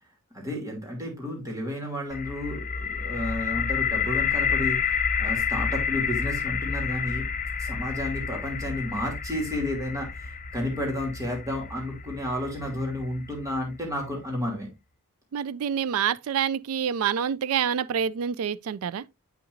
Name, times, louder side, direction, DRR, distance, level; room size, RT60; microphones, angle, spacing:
voice 1, 0.3-7.3 7.6-14.7, left 1 dB, 15° right, 2.8 m, -32 dB
sound 1, 2.1-13.9, left 6 dB, 35° left, 0.6 m, -30 dB
voice 2, 15.3-19.0, right 8 dB, 65° right, 0.4 m, -27 dB
8.3 x 5.7 x 2.6 m
head